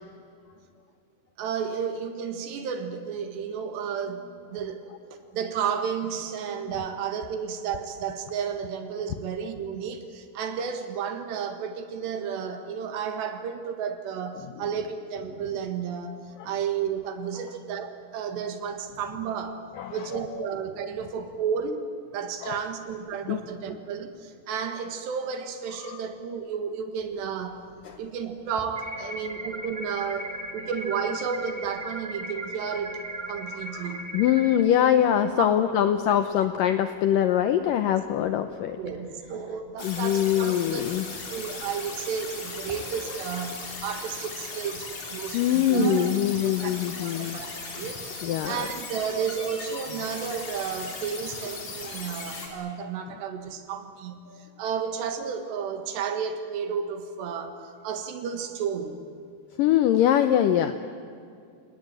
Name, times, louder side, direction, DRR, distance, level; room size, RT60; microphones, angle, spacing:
voice 1, 1.4-4.8 5.1-19.6 19.9-21.9 22.1-27.6 28.0-33.0 33.3-34.1 35.4-35.5 38.8-40.9 41.3-46.1 46.4-46.7 47.0-59.0, right 7 dB, 80° right, 7 dB, 3.9 m, -32 dB
voice 2, 19.7-20.5 22.4-22.6 23.3-23.4 25.8-26.0 27.8-28.0 33.7-38.8 39.8-41.1 45.3-47.4 48.2-48.7 54.3-54.4 59.6-60.8, left 11 dB, 80° left, 9 dB, 1.9 m, -24 dB
sound 1, 27.0-43.2, left 1 dB, ahead, 5.3 m, -53 dB
sound 2, 28.8-34.6, right 1 dB, 20° right, 1.9 m, -37 dB
sound 3, 39.8-52.5, left 3 dB, 40° left, 4.5 m, -38 dB
29.0 x 18.5 x 9.0 m, 2.5 s
omnidirectional pair, 5.0 m